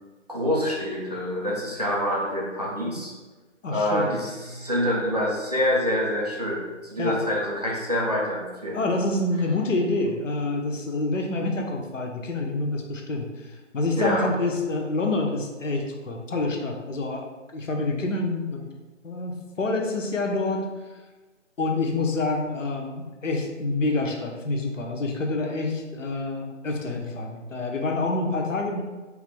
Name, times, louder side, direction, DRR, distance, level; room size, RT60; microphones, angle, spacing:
voice 1, 0.3-3.1 3.7-8.8 14.0-14.3, equal, 35° right, -4 dB, 0.4 m, -26 dB
voice 2, 3.6-4.2 7.0-7.2 8.7-17.3 17.5-18.6 19.0-20.7 21.6-28.8, left 2 dB, 85° left, 2 dB, 0.7 m, -27 dB
3.0 x 2.4 x 3.4 m, 1.2 s
figure-of-eight pair, 160°, 38 cm